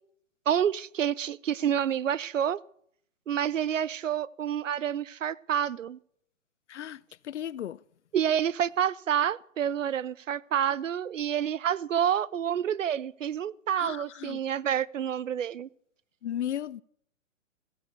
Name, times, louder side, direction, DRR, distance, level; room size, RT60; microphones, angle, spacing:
voice 1, 0.5-2.6 3.3-6.0 8.1-15.7, right 9 dB, 70° right, 0.7 m, -28 dB
voice 2, 6.7-7.0 7.3-7.8 13.8-14.4 16.2-16.8, left 10 dB, 60° left, 0.5 m, -35 dB
15.5 x 11.0 x 6.9 m
figure-of-eight pair, 130°, 40 cm